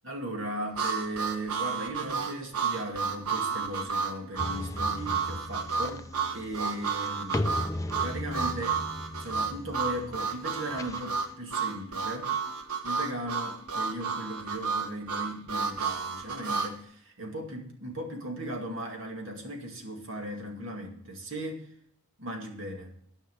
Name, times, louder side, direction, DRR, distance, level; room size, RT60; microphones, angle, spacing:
voice 1, 0.0-7.6 8.0-8.8 9.2-12.3 12.8-21.7 22.2-22.9, right 1 dB, 60° right, 2 dB, 2.2 m, -37 dB
Harmonica, 0.8-16.7, right 5 dB, 85° right, 1.2 m, -31 dB
sound 1, 3.5-14.0, left 4 dB, 25° right, 2.6 m, -57 dB
sound 2, 4.4-11.3, left 1 dB, 15° left, 0.4 m, -37 dB
13.0 x 5.8 x 7.0 m, 0.66 s
head